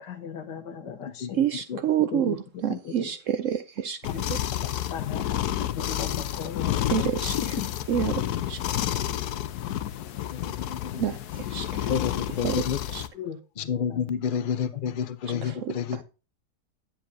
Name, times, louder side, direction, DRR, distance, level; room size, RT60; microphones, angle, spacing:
voice 1, 0.0-1.4 2.1-2.4 2.7-3.1 4.1-4.2 4.9-6.9 13.1-13.4 13.9-14.1 14.7-14.8 15.3-15.6, left 7 dB, 90° left, 1.8 m, -37 dB
voice 2, 1.3-4.4 6.9-9.0 11.0-11.9 12.3-13.0 15.3-16.0, right 10 dB, 70° right, 0.7 m, -29 dB
sound 1, 4.0-13.1, left 12 dB, 70° left, 1.2 m, -30 dB
voice 3, 10.4-11.0 11.9-12.8 13.6-16.0, left 8 dB, 55° left, 0.6 m, -29 dB
9.9 x 8.5 x 2.7 m
omnidirectional pair, 1.8 m